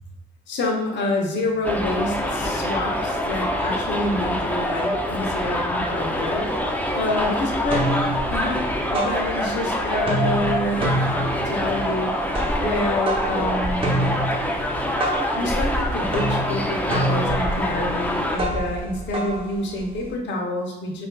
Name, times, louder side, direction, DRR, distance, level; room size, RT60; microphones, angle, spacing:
voice 1, 0.5-8.6 8.9-10.8 11.4-12.1 12.6-14.1 15.3-21.1, left 1 dB, 65° left, 0 dB, 0.8 m, -27 dB
Subway metro underground, 1.6-18.4, equal, 10° left, 0.4 m, -25 dB
sound 1, 6.2-6.3 6.6-7.2 7.5-9.7 10.0-20.1, right 1 dB, 25° right, 0.9 m, -28 dB
5.0 x 2.4 x 2.2 m, 0.88 s
cardioid pair, 90°, 20 cm